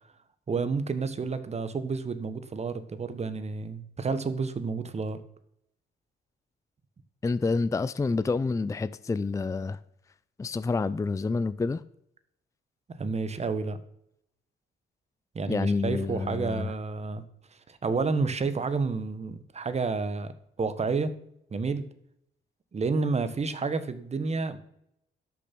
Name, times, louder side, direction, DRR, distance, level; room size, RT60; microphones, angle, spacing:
voice 1, 0.5-5.2 13.0-13.8 15.3-17.2 17.7-20.3 20.6-21.1 21.5-21.9 22.7-24.6, right 4 dB, 35° right, 1.3 m, -30 dB
voice 2, 7.2-9.8 10.4-11.8 15.5-16.7, left 4 dB, 15° left, 0.4 m, -28 dB
11.5 x 6.8 x 6.1 m
cardioid pair, 90°, 20 cm